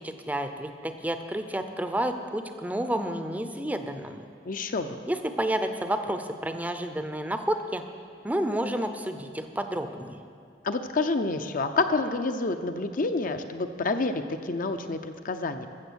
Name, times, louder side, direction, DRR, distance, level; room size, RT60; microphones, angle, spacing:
voice 1, 0.0-4.2 5.1-7.8 8.2-10.2, right 1 dB, 10° right, 7 dB, 0.6 m, -30 dB
voice 2, 4.5-5.0 10.6-15.7, left 3 dB, 50° left, 8 dB, 0.6 m, -28 dB
14.0 x 7.4 x 6.3 m, 2.3 s
head